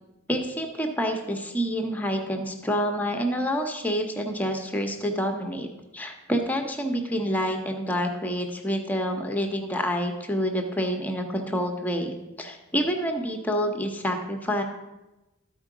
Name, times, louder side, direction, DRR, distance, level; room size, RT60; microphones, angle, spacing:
voice 1, 0.3-5.7 5.9-14.6, equal, 10° left, 3 dB, 0.8 m, -28 dB
12.5 x 4.6 x 4.9 m, 1.0 s
head